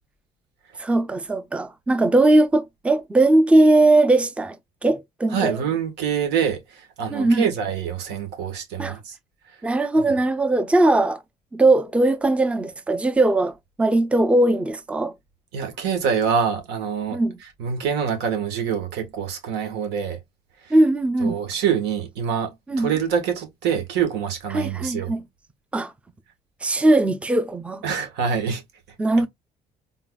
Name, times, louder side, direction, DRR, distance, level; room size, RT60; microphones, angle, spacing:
voice 1, 0.8-4.6 4.8-5.6 7.1-7.5 8.8-9.0 9.6-11.2 11.5-15.1 17.1-17.3 20.7-21.4 22.7-22.9 24.5-25.2 25.7-25.9 26.6-27.8 29.0-29.3, right 2 dB, 5° right, 0.5 m, -19 dB
voice 2, 5.3-9.2 15.5-17.2 17.6-20.2 20.6-20.7 21.2-25.1 27.8-28.6, right 7 dB, 85° right, 1.6 m, -25 dB
3.9 x 3.8 x 2.4 m
cardioid pair, 110°, 17 cm